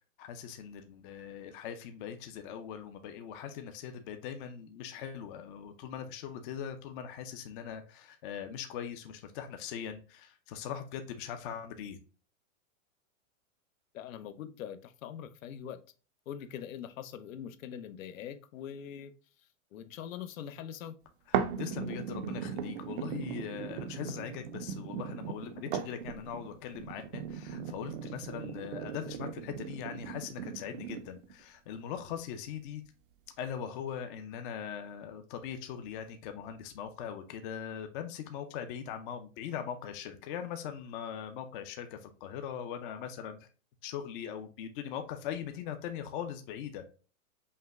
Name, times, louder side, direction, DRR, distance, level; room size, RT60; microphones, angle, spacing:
voice 1, 0.2-12.0 21.3-32.8 33.4-43.5 43.8-46.9, left 8 dB, 40° left, 7 dB, 0.5 m, -41 dB
voice 2, 13.9-15.8 16.3-19.1 19.7-20.9, left 9 dB, 75° left, 11 dB, 0.7 m, -43 dB
sound 1, 21.3-31.3 31.9-32.0, right 8 dB, 40° right, 0.4 m, -38 dB
5.5 x 2.1 x 3.4 m, 0.36 s
supercardioid pair, 155°, 40 cm